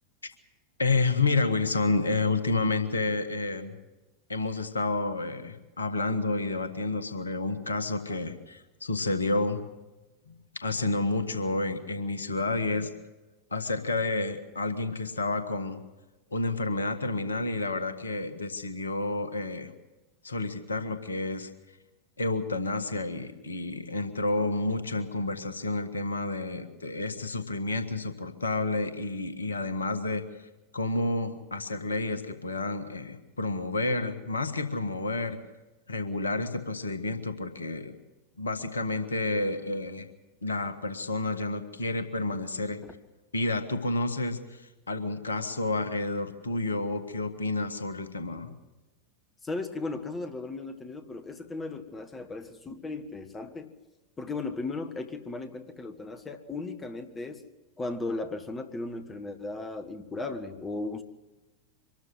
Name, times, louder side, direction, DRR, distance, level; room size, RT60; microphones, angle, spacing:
voice 1, 0.8-3.8 4.3-9.6 10.3-12.9 13.5-15.8 16.3-19.7 20.2-21.5 22.2-35.4 35.9-37.9 38.4-40.1 40.4-42.8 43.3-48.5, left 3 dB, 75° left, 10 dB, 1.6 m, -30 dB
voice 2, 49.4-53.7 54.2-57.4 57.8-61.0, left 3 dB, 15° left, 8 dB, 1.6 m, -36 dB
24.5 x 13.0 x 8.0 m, 1.1 s
figure-of-eight pair, 90°, 0 cm